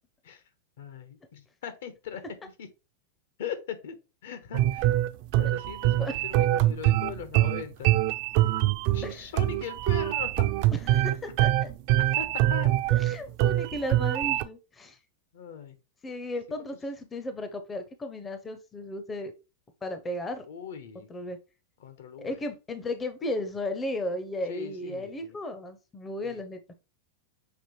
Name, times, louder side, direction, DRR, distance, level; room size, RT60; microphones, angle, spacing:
voice 1, 0.8-2.7 3.4-4.0 4.2-5.0 5.3-7.9 8.9-10.5 12.2-12.7 15.3-15.8 16.6-16.7 20.5-21.1 21.8-22.4 24.5-25.4 26.2-26.4, left 7 dB, 70° left, 0.9 m, -40 dB
sound 1, 4.5-14.4, right 14 dB, 45° right, 0.4 m, -24 dB
voice 2, 10.9-11.7 12.9-15.0 16.0-19.3 19.8-20.5 21.1-21.4 22.2-26.6, left 1 dB, 15° left, 0.5 m, -35 dB
5.8 x 2.9 x 3.1 m
supercardioid pair, 155°, 0 cm